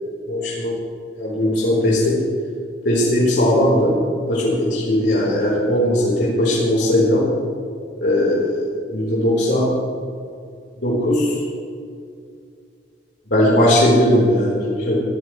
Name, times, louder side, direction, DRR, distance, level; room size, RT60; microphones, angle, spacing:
voice 1, 0.3-0.7 1.2-2.2 2.8-3.9 4.3-7.2 8.0-8.6 8.9-9.7 10.8-11.3 13.3-15.0, left 1 dB, 75° left, -6 dB, 4.2 m, -18 dB
23.5 x 14.5 x 3.3 m, 2.4 s
head